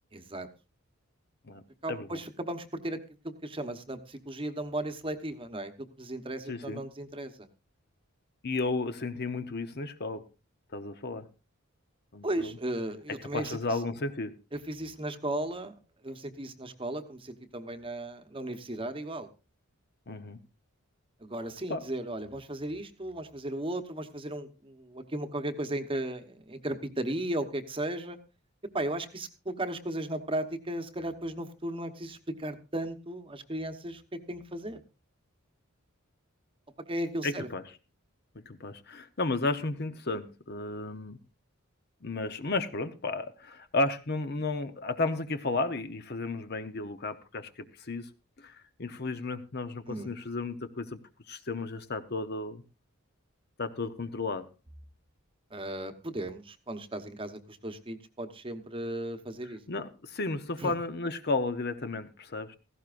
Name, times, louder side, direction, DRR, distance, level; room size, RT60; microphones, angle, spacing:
voice 1, 0.1-0.5 1.8-7.5 12.2-13.8 14.5-19.3 21.2-28.2 28.7-34.8 36.9-37.5 49.9-50.1 55.5-59.6 60.6-60.7, right 1 dB, 25° right, 8 dB, 1.0 m, -36 dB
voice 2, 1.9-2.2 6.5-6.8 8.4-10.2 10.7-11.3 12.1-12.5 13.3-14.3 20.1-20.4 21.7-21.8 37.2-37.6 38.5-41.2 42.0-48.1 48.4-51.0 51.3-52.6 53.6-54.5 59.7-62.5, left 3 dB, 50° left, 10 dB, 0.9 m, -33 dB
17.0 x 15.0 x 2.5 m, 0.29 s
head